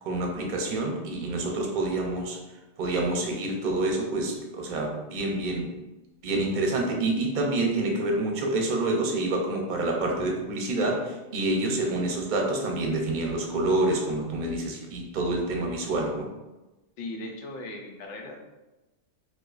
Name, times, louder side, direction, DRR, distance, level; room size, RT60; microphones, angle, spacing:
voice 1, 0.0-2.4 2.8-5.7 6.2-16.3, right 2 dB, 50° right, 1 dB, 0.6 m, -27 dB
voice 2, 17.0-18.4, left 2 dB, 80° left, 2 dB, 0.9 m, -38 dB
4.7 x 2.1 x 2.4 m, 1.1 s
omnidirectional pair, 1.2 m